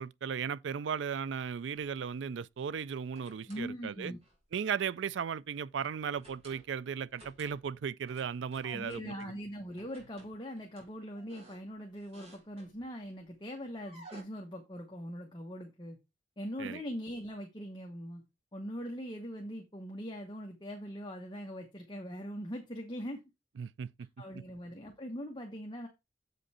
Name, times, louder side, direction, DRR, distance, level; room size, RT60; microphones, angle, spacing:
voice 1, 0.0-4.1 4.5-9.4 16.6-16.8 23.6-24.1 24.3-24.4, right 7 dB, 80° right, 0.4 m, -36 dB
sound 1, 2.9-3.7 4.2-4.5 6.1-6.7 7.1-7.7 8.1-9.3 9.7-13.0 13.8-14.2, right 2 dB, 35° right, 4.0 m, -57 dB
voice 2, 3.5-4.2 8.6-16.0 16.4-18.2 18.5-23.2 24.2-25.9, equal, 25° left, 1.0 m, -41 dB
7.7 x 5.2 x 4.2 m
head